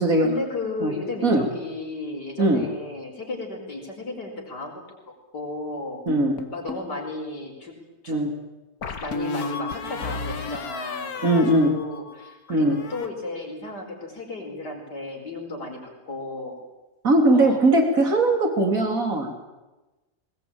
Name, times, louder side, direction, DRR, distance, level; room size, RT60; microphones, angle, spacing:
voice 1, 0.2-4.8 5.3-6.0 6.5-7.8 8.0-8.2 8.9-16.6 17.3-17.6, left 2 dB, 85° left, 1 dB, 5.5 m, -34 dB
sound 1, 6.1-6.9 8.8-12.3 12.6-13.1, left 3 dB, 65° left, 1.9 m, -33 dB
voice 2, 6.1-6.4 8.1-8.3 11.2-11.7 12.5-12.8 17.0-19.4, right 1 dB, 55° right, 3 dB, 3.8 m, -20 dB
21.0 x 20.5 x 8.9 m, 1.1 s
omnidirectional pair, 1.7 m